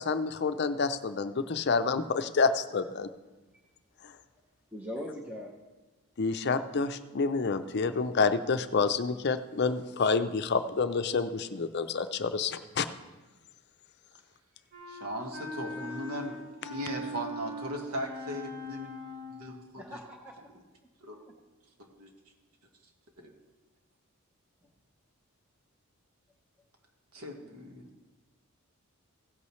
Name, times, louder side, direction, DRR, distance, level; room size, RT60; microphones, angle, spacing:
voice 1, 0.0-3.1 4.0-4.1 6.2-12.9, left 4 dB, 50° left, 10 dB, 0.5 m, -28 dB
voice 2, 4.7-5.5 15.6-16.1 19.8-20.4 24.6-24.7, left 1 dB, 10° right, -1 dB, 0.7 m, -41 dB
Wind instrument woodwind instrument, 14.7-19.5, equal, 50° right, 4.2 m, -41 dB
voice 3, 14.9-16.4 16.7-19.0 19.3-20.0 21.0-21.2 21.8-22.1 23.2-23.3 27.1-27.9, equal, 80° right, 2 dB, 1.6 m, -38 dB
16.0 x 8.5 x 3.2 m, 1.2 s
head